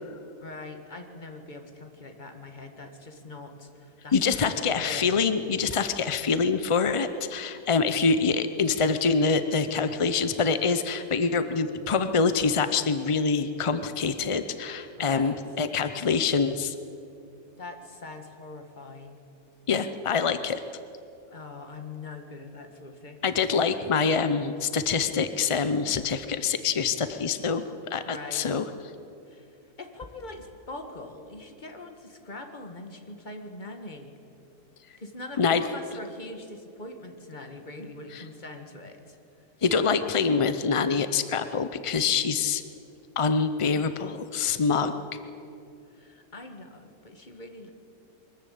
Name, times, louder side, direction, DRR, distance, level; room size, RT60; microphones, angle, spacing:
voice 1, 0.4-5.2 15.0-15.4 17.6-19.2 21.3-23.2 28.0-28.5 29.3-29.5 29.8-34.1 35.0-39.2 45.9-47.7, left 2 dB, 30° left, 5 dB, 1.7 m, -42 dB
voice 2, 4.1-16.8 19.7-20.6 23.2-28.7 35.4-35.6 38.1-38.2 39.6-42.6 43.2-44.9, left 5 dB, 45° left, 10 dB, 0.4 m, -25 dB
22.5 x 14.0 x 8.6 m, 2.6 s
omnidirectional pair, 1.6 m